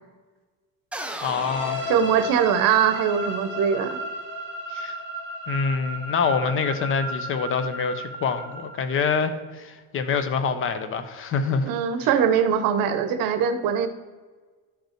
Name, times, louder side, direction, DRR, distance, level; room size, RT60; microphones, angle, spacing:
sound 1, 0.9-2.9, right 1 dB, 5° right, 0.4 m, -37 dB
voice 1, 1.2-1.8 4.7-4.9 5.5-11.7, left 5 dB, 40° left, 10 dB, 0.6 m, -26 dB
sound 2, 1.2-9.0, equal, 30° right, 2.6 m, -34 dB
voice 2, 1.9-4.0 11.6-13.9, right 8 dB, 75° right, 10 dB, 0.9 m, -22 dB
11.5 x 5.3 x 4.4 m, 1.4 s
cardioid pair, 160°, 34 cm